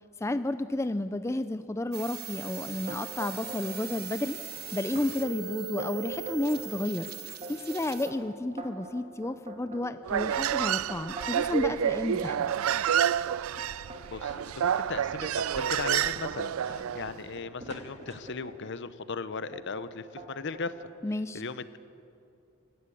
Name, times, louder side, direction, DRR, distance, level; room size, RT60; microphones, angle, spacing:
voice 1, 0.2-4.4 4.7-7.1 7.5-12.5 21.0-21.4, left 1 dB, 15° left, 11 dB, 0.4 m, -32 dB
sound 1, 1.9-8.1, right 7 dB, 50° right, 1.4 m, -40 dB
sound 2, 2.9-3.8 4.1-4.6 5.0-5.1 5.5-6.7 7.2-11.5 11.9-14.4 15.0-15.2 15.7-18.7 19.5-19.9 20.2-20.9, right 2 dB, 35° right, 2.8 m, -44 dB
Human voice, 10.0-17.1, right 9 dB, 85° right, 0.4 m, -29 dB
voice 2, 14.1-20.9 21.3-21.8, left 4 dB, 60° left, 13 dB, 0.8 m, -37 dB
25.5 x 13.0 x 8.5 m, 2.6 s
head